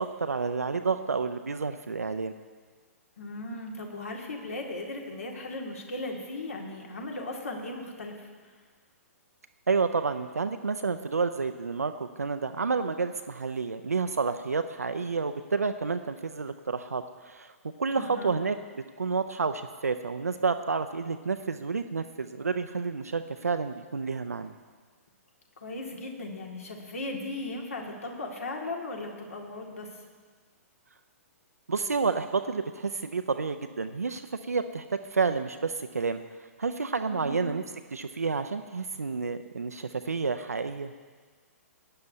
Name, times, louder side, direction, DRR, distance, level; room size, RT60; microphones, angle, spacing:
voice 1, 0.0-2.3 9.7-17.5 17.8-24.5 31.7-34.8 35.1-36.2 36.6-37.6 37.9-40.9, right 4 dB, 80° right, 9 dB, 0.5 m, -30 dB
voice 2, 3.2-8.3 17.9-18.4 25.6-29.9 37.0-37.5, left 2 dB, 65° left, 1 dB, 2.1 m, -37 dB
18.0 x 10.5 x 2.7 m, 1.5 s
figure-of-eight pair, 120°, 8 cm